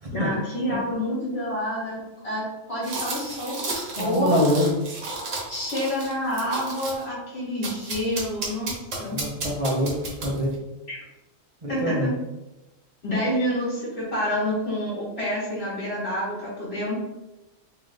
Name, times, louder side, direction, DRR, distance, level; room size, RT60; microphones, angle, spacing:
voice 1, 0.1-2.0 2.2-4.4 5.5-8.7 9.0-9.2 10.9-11.0 11.7-12.1 13.0-17.0, equal, 55° left, -7 dB, 2.0 m, -28 dB
sound 1, 2.8-7.1 7.6-10.5, right 3 dB, 75° right, 1.4 m, -33 dB
voice 2, 4.0-4.7 9.1-10.6 11.6-12.1, equal, 30° right, -4 dB, 0.8 m, -25 dB
3.4 x 3.2 x 3.9 m, 0.99 s
omnidirectional pair, 1.3 m